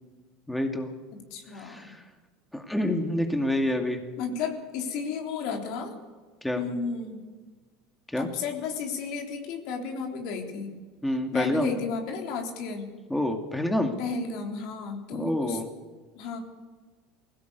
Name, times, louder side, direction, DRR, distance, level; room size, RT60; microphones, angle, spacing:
voice 1, 0.5-0.9 1.7-2.0 2.5-4.0 6.4-6.6 8.1-8.3 11.0-11.7 13.1-13.9 15.1-15.7, left 1 dB, 5° left, 4 dB, 2.4 m, -27 dB
voice 2, 1.3-1.9 4.2-6.0 6.6-7.2 8.2-10.7 11.3-12.9 14.0-15.6 16.1-16.4, left 5 dB, 65° left, 3 dB, 3.6 m, -33 dB
20.0 x 16.5 x 8.3 m, 1.4 s
supercardioid pair, 100°, 0 cm